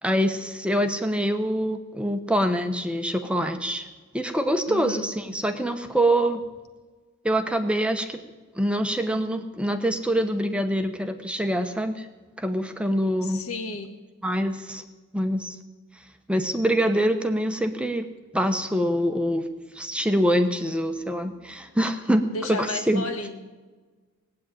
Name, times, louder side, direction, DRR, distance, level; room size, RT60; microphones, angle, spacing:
voice 1, 0.0-3.9 4.1-6.4 7.2-8.2 8.5-12.1 12.4-13.4 14.2-14.8 15.1-15.6 16.3-18.1 18.3-19.5 19.7-23.1, equal, 5° right, 7 dB, 0.9 m, -25 dB
voice 2, 4.6-5.1 13.2-14.0 22.3-23.4, left 3 dB, 80° left, 7 dB, 1.7 m, -33 dB
18.0 x 8.5 x 9.2 m, 1.3 s
head